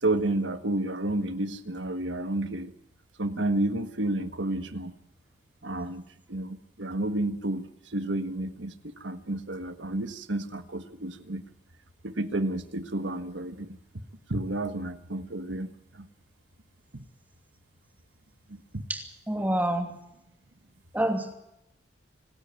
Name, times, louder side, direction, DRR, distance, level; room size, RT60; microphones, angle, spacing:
voice 1, 0.0-2.7 3.2-4.9 5.6-6.0 6.3-11.4 12.0-13.8 14.3-16.1 16.9-17.0 18.5-18.8, right 2 dB, 80° right, 9 dB, 1.6 m, -31 dB
voice 2, 18.9-19.9 20.9-21.3, right 1 dB, 10° right, 4 dB, 2.7 m, -28 dB
26.5 x 12.5 x 9.1 m, 0.82 s
head